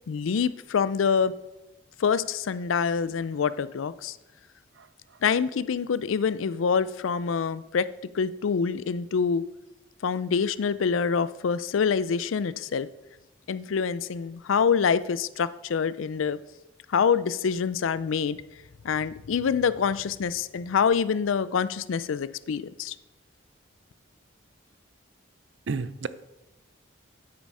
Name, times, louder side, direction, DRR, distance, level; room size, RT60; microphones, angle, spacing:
voice 1, 0.0-1.3 2.0-4.2 5.2-7.9 8.1-9.4 10.0-12.9 13.5-16.4 16.9-18.4 18.8-22.9, left 6 dB, 85° left, 16 dB, 0.4 m, -26 dB
voice 2, 4.8-5.2 25.7-26.1, right 4 dB, 65° right, 14 dB, 0.5 m, -33 dB
9.4 x 8.4 x 4.8 m, 0.96 s
head